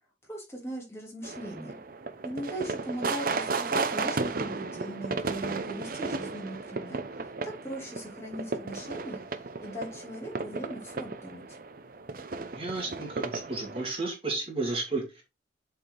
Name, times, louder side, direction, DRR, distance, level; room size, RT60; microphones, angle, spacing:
voice 1, 0.2-1.8 2.2-11.6, equal, 15° left, 2.9 m, -39 dB
sound 1, 1.2-13.9, right 4 dB, 50° right, 0.7 m, -34 dB
voice 2, 12.5-15.2, right 3 dB, 30° right, 2.1 m, -32 dB
7.8 x 4.5 x 3.9 m
head